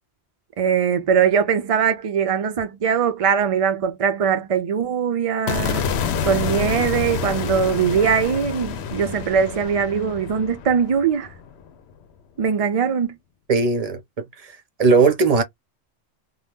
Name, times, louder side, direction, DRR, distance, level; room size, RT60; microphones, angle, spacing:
voice 1, 0.6-5.8 6.2-11.3 12.4-13.2, right 7 dB, 60° right, 0.3 m, -21 dB
sound 1, 5.5-11.7, left 6 dB, 75° left, 0.8 m, -28 dB
voice 2, 13.5-14.0 14.4-15.4, right 4 dB, 40° right, 0.7 m, -18 dB
2.7 x 2.2 x 3.3 m
omnidirectional pair, 1.1 m